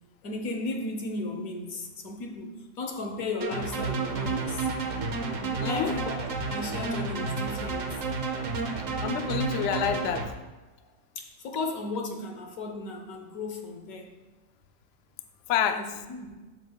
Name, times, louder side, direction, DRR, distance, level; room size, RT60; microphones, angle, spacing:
voice 1, 0.2-4.7 5.7-7.9 11.1-14.2 15.7-16.3, left 2 dB, 60° left, 4 dB, 1.4 m, -35 dB
sound 1, 3.4-10.3, right 4 dB, 55° right, 1.1 m, -31 dB
voice 2, 5.6-6.0 9.0-10.3 15.5-15.8, left 9 dB, 85° left, 8 dB, 0.6 m, -28 dB
sound 2, 5.7-8.3 8.6-8.7, left 1 dB, 10° left, 1.6 m, -47 dB
12.5 x 6.8 x 2.3 m, 1.2 s
omnidirectional pair, 1.8 m